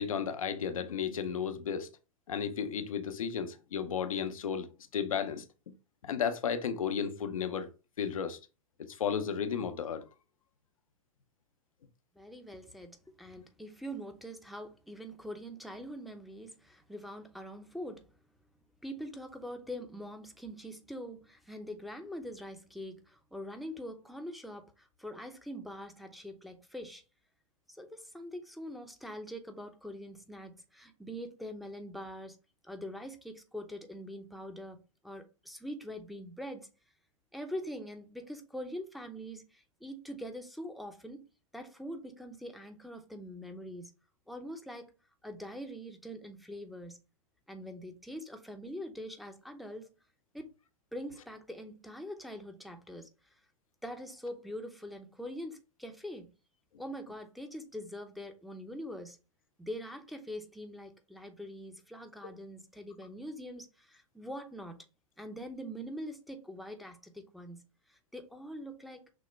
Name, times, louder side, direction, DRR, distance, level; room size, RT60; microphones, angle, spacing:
voice 1, 0.0-1.9 2.3-5.4 6.0-7.7 8.0-8.4 8.9-10.0, left 7 dB, 90° left, 0.6 m, -33 dB
voice 2, 12.1-18.1 18.8-27.0 27.7-32.4 32.6-36.7 37.3-41.2 41.5-43.9 44.3-44.9 45.2-47.0 47.5-49.9 50.3-50.5 50.9-53.1 53.8-56.3 56.8-59.2 59.6-64.8 65.2-67.6 67.9-69.0, equal, ahead, 0.6 m, -43 dB
6.1 x 2.1 x 3.1 m
hypercardioid pair, 120°, 17 cm